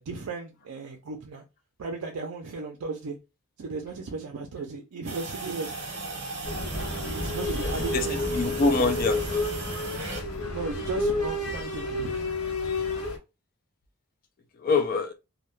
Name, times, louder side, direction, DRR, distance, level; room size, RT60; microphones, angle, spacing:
voice 1, 0.0-1.4 1.8-3.2 3.6-5.7 7.1-8.8 10.4-12.1, right 3 dB, 75° right, 0.4 m, -36 dB
sound 1, 5.1-10.2, right 3 dB, 55° right, 0.8 m, -37 dB
sound 2, 6.4-13.2, left 2 dB, 85° left, 0.9 m, -30 dB
voice 2, 7.9-9.6 14.6-15.1, left 3 dB, 40° left, 0.3 m, -26 dB
2.2 x 2.2 x 3.0 m
head